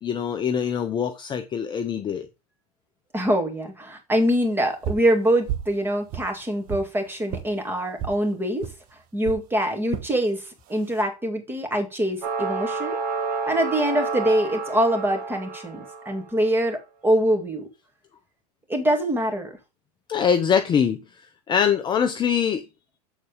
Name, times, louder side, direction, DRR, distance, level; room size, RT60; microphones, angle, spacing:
voice 1, 0.0-2.3 20.1-21.0 21.5-22.6, left 7 dB, 20° left, 0.6 m, -23 dB
voice 2, 3.1-8.7 9.1-13.0 13.5-17.7 18.7-19.6, right 1 dB, 10° right, 2.1 m, -24 dB
sound 1, 4.8-5.1 5.5-5.8 6.1-6.9 7.3-7.5 8.0-8.2 8.6-8.8 9.2-9.4 9.9-10.1 10.7-11.0, right 10 dB, 45° right, 1.0 m, -31 dB
sound 2, 12.2-16.3, right 4 dB, 80° right, 1.9 m, -30 dB
7.3 x 4.0 x 4.9 m
hypercardioid pair, 100°, 20 cm